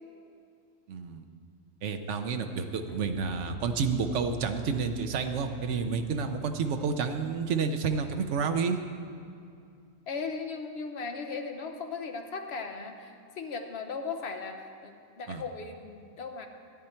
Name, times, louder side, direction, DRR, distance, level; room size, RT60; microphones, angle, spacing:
voice 1, 0.9-1.2 1.8-8.8 15.3-15.4, right 5 dB, 65° right, 7 dB, 1.1 m, -30 dB
sound 1, 2.9-8.1, right 5 dB, ahead, 1.1 m, -48 dB
voice 2, 10.1-16.5, left 4 dB, 55° left, 4 dB, 1.2 m, -37 dB
14.0 x 10.0 x 4.4 m, 2.4 s
omnidirectional pair, 1.4 m